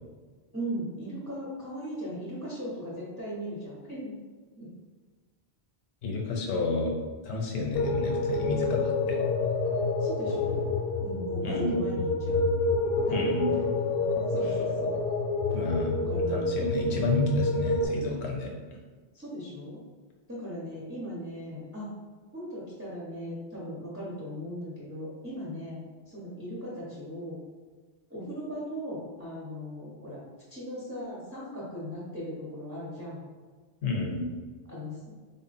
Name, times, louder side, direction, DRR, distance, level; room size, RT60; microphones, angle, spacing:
voice 1, 0.5-4.2 4.6-4.7 10.0-10.7 11.0-12.5 13.1-13.2 13.5-13.6 14.2-14.9 16.0-16.5 19.1-19.8 20.3-21.9 22.3-27.4 28.1-30.2 30.5-33.2 34.7-35.0, equal, 15° right, -8 dB, 0.7 m, -38 dB
voice 2, 6.0-6.9 7.2-9.2 11.4-11.8 13.1-13.5 15.5-15.9 16.3-18.5 33.8-34.3, left 3 dB, 80° left, 1 dB, 1.0 m, -30 dB
sound 1, 7.7-17.9, left 3 dB, 60° left, 0.8 m, -28 dB
3.7 x 2.1 x 4.0 m, 1.4 s
omnidirectional pair, 1.1 m